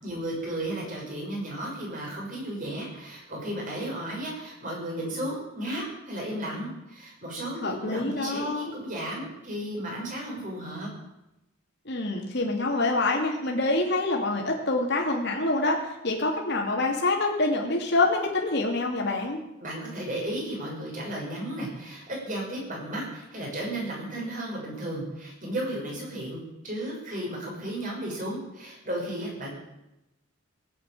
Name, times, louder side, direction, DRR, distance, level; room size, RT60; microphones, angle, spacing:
voice 1, 0.0-10.9 19.6-29.5, right 1 dB, 40° right, -2 dB, 6.4 m, -34 dB
voice 2, 7.6-8.7 11.8-19.4, left 2 dB, 55° left, 0 dB, 2.7 m, -26 dB
17.5 x 8.5 x 9.0 m, 0.93 s
head